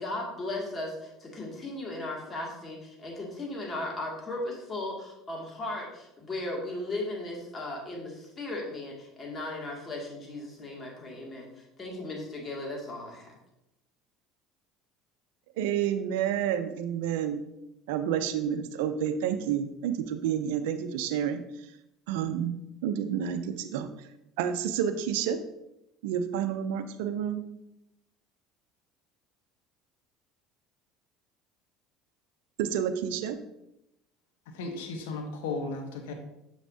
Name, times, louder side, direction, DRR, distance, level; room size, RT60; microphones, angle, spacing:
voice 1, 0.0-13.3, left 2 dB, 30° left, -1 dB, 2.3 m, -36 dB
voice 2, 15.6-17.4 17.9-21.4 22.1-22.6 22.8-24.1 24.4-25.4 26.0-27.4 32.6-33.4, right 9 dB, 80° right, 9 dB, 0.5 m, -29 dB
voice 3, 34.6-36.1, left 3 dB, 85° left, 4 dB, 1.0 m, -35 dB
7.2 x 6.0 x 2.8 m, 0.85 s
supercardioid pair, 85°, 0 cm